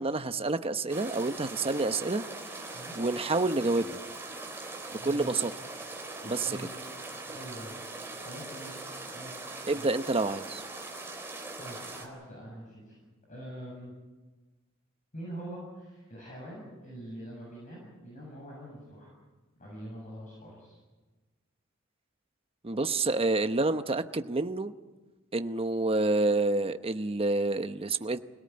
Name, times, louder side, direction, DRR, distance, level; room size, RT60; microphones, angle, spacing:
voice 1, 0.0-2.2 2.9-4.0 5.0-5.5 6.2-6.6 9.7-10.6 22.6-24.7 25.3-28.2, right 2 dB, 30° right, 9 dB, 0.9 m, -28 dB
sound 1, 0.9-12.1, right 2 dB, 10° right, 3.9 m, -41 dB
voice 2, 5.0-5.4 6.2-6.7 7.3-7.7 8.0-8.7 9.1-10.0 11.6-13.0 13.3-13.9 15.1-19.1 19.6-20.8, right 1 dB, 40° left, -3 dB, 7.4 m, -44 dB
25.5 x 18.0 x 8.7 m, 1.2 s
head